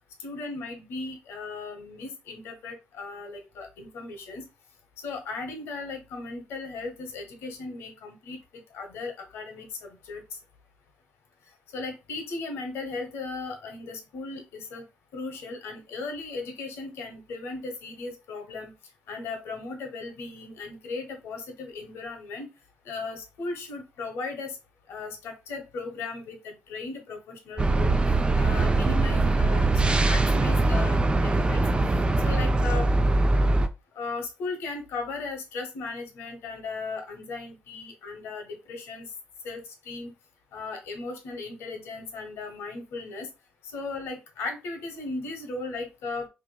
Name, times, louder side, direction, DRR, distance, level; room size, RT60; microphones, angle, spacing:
voice 1, 0.2-4.5 5.0-10.4 11.7-14.8 15.1-18.7 19.1-22.5 22.8-24.6 24.9-28.0 28.4-31.6 32.2-32.9 33.9-39.1 39.4-40.1 40.5-43.3 43.6-46.3, left 3 dB, 75° left, 4 dB, 1.0 m, -37 dB
sound 1, 27.6-33.7, right 2 dB, 25° right, 0.4 m, -22 dB
3.5 x 2.9 x 2.2 m, 0.26 s
supercardioid pair, 60°, 4 cm